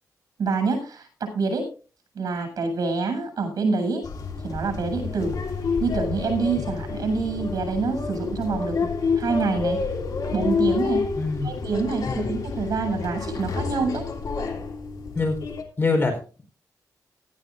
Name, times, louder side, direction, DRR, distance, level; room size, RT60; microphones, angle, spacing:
voice 1, 0.4-1.7 2.1-4.0 4.4-5.4 5.8-8.9 9.2-9.8 10.3-11.1 11.4-14.1, right 4 dB, 65° right, 5 dB, 7.7 m, -26 dB
sound 1, 4.0-15.6, left 4 dB, 65° left, 3.3 m, -29 dB
voice 2, 11.2-11.5 12.1-12.3 15.1-15.4 15.8-16.4, left 3 dB, 35° left, 5 dB, 4.2 m, -24 dB
18.0 x 14.5 x 2.6 m, 0.36 s
wide cardioid pair, 120°, 7 cm